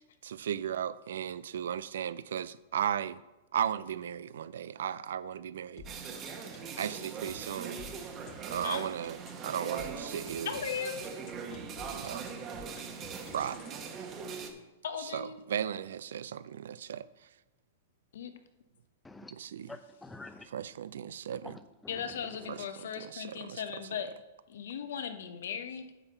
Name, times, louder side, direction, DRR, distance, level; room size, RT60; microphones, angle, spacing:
voice 1, 0.2-3.2 3.5-5.8 6.8-7.8 8.5-9.2 9.4-10.5 11.9-12.2 13.3-13.6 15.0-17.1 19.3-19.7 20.5-21.6 22.5-23.6, right 9 dB, 75° right, 16 dB, 0.3 m, -36 dB
sound 1, 5.8-13.7, left 6 dB, 45° left, 1.2 m, -51 dB
sound 2, 5.8-14.5, right 6 dB, 30° right, 1.1 m, -41 dB
voice 2, 10.4-11.0 14.8-15.4 18.1-18.4 21.9-24.1 24.5-25.9, left 7 dB, 75° left, 8 dB, 0.9 m, -37 dB
voice 3, 19.7-20.5 21.3-22.2 22.6-22.7, left 2 dB, 10° left, 10 dB, 0.6 m, -48 dB
9.7 x 3.7 x 6.9 m, 1.1 s
hypercardioid pair, 130°, 0 cm